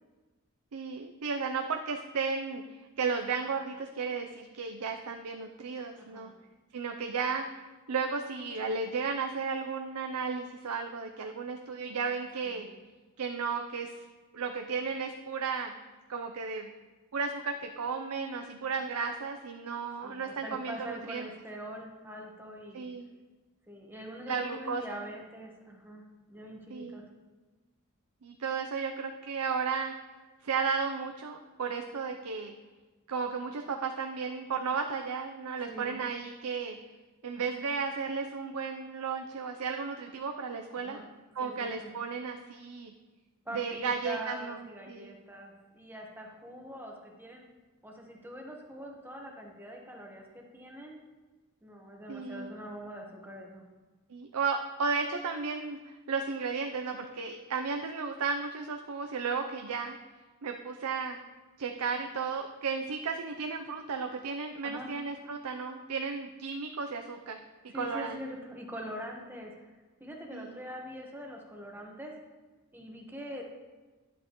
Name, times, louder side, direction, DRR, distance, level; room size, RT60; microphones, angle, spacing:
voice 1, 0.7-2.6 3.0-6.3 6.7-7.5 7.9-12.7 13.2-14.1 14.3-15.7 16.1-16.7 17.1-21.3 22.7-23.1 24.3-24.8 26.7-27.0 28.2-29.9 30.4-32.5 33.1-36.8 37.2-41.0 41.3-42.9 43.5-44.6 44.9-45.2 52.1-52.5 54.1-60.0 60.4-61.2 61.6-67.4 67.6-68.2 70.3-70.6, right 5 dB, 85° right, 4 dB, 0.6 m, -34 dB
voice 2, 5.9-6.3 12.5-12.7 20.0-22.9 23.7-26.0 26.3-27.0 35.7-36.0 40.8-41.0 41.4-41.9 43.4-47.4 47.8-51.0 51.6-53.6 64.6-64.9 67.7-69.7 70.0-72.1 72.7-73.4, equal, 10° right, 0 dB, 1.2 m, -43 dB
11.0 x 8.0 x 3.1 m, 1.3 s
head